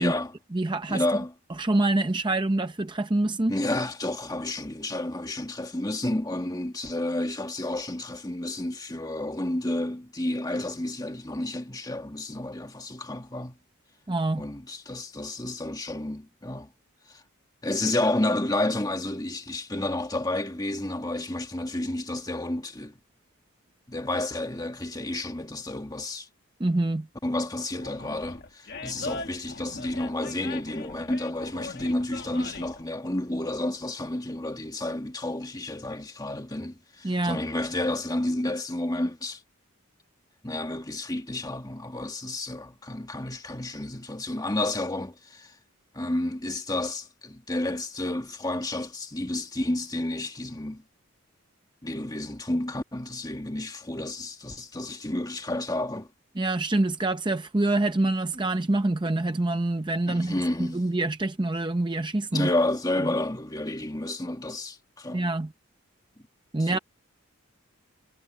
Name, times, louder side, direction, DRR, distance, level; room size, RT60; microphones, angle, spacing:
voice 1, 0.0-0.3 0.9-1.3 3.5-13.6 14.4-16.7 17.1-17.2 17.6-22.9 23.9-26.3 27.2-39.4 40.4-45.5 45.9-50.8 51.8-56.1 60.1-60.8 62.3-65.2 66.6-66.8, left 1 dB, 15° left, 1.6 m, -30 dB
voice 2, 0.5-1.0 1.6-3.5 14.1-14.4 26.6-27.1 37.0-37.4 56.4-62.5 65.1-65.5 66.5-66.8, right 2 dB, 20° right, 0.6 m, -26 dB
Animal, 27.8-32.8, left 3 dB, 50° left, 1.7 m, -40 dB
head